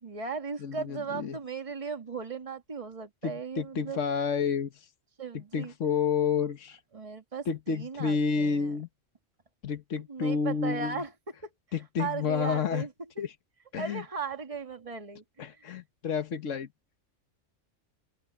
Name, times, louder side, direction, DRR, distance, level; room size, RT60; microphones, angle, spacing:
voice 1, 0.0-4.0 5.2-5.7 6.9-8.7 10.1-11.1 12.0-12.9 13.8-15.7, right 5 dB, 25° right, 1.8 m, -37 dB
voice 2, 0.6-1.4 3.2-4.9 5.3-6.8 7.5-8.9 9.6-11.0 11.7-12.9 13.2-13.3 13.7-14.0 15.4-16.7, left 6 dB, 80° left, 1.5 m, -30 dB
open air
omnidirectional pair, 1.3 m